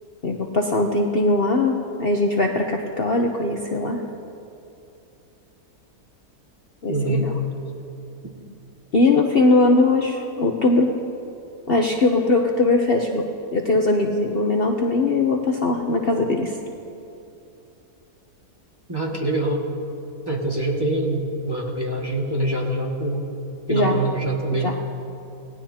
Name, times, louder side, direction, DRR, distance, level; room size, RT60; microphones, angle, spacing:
voice 1, 0.2-4.0 6.8-7.3 8.9-10.9 11.7-16.6 23.7-24.0 24.5-24.7, left 2 dB, 45° left, 1 dB, 1.0 m, -20 dB
voice 2, 6.9-7.3 18.9-19.6 20.3-23.3 23.7-24.7, right 1 dB, 15° right, -2 dB, 1.9 m, -24 dB
27.5 x 18.0 x 2.9 m, 2.7 s
omnidirectional pair, 1.6 m